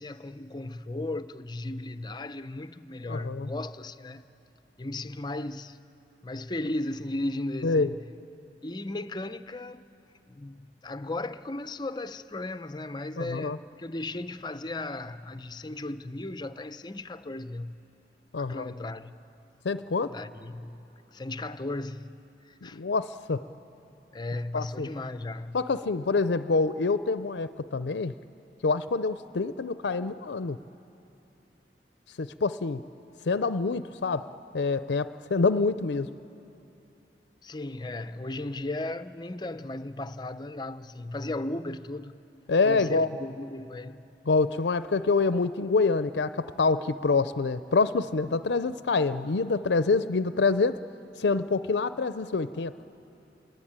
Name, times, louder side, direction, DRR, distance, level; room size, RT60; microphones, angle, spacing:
voice 1, 0.0-4.2 4.8-5.8 6.2-8.0 8.6-9.8 10.3-17.7 18.4-19.2 20.1-22.1 22.4-22.8 24.1-25.6 37.4-42.2 42.6-44.1, left 2 dB, 25° left, 0.6 m, -36 dB
voice 2, 3.1-3.5 7.6-7.9 13.2-13.6 18.3-18.7 19.6-20.2 22.7-23.4 24.5-24.9 25.5-28.1 28.6-30.6 32.2-32.8 33.3-34.3 34.5-36.1 42.5-43.1 44.3-50.8 51.2-52.7, left 4 dB, 80° left, 0.5 m, -26 dB
28.5 x 22.0 x 8.8 m
head